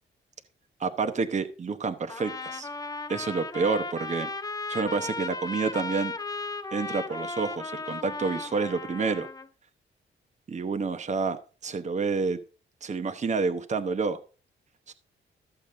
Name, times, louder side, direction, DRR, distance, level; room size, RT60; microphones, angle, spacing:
voice 1, 0.8-2.7 3.1-4.3 4.7-6.1 6.7-9.3 10.5-12.4 12.8-14.2 14.9-15.0, right 4 dB, 35° right, 8 dB, 1.0 m, -29 dB
Trumpet, 2.1-9.5, left 3 dB, 20° left, 0.7 m, -36 dB
13.5 x 7.2 x 3.8 m, 0.36 s
cardioid pair, 110°, 21 cm